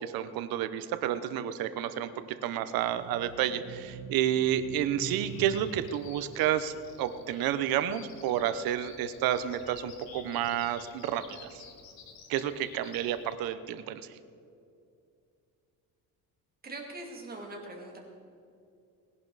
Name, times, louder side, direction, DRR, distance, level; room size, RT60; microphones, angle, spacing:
voice 1, 0.0-11.6 12.3-14.0, right 10 dB, 80° right, 11 dB, 0.9 m, -30 dB
sound 1, 2.7-8.3 8.8-10.7, right 8 dB, 45° right, 0.6 m, -46 dB
Bird vocalization bird call bird song, 5.0-13.3, left 6 dB, 80° left, 2.0 m, -52 dB
voice 2, 16.6-18.0, right 2 dB, 25° right, 0 dB, 2.6 m, -42 dB
19.5 x 11.0 x 4.0 m, 2.5 s
cardioid pair, 140°, 35 cm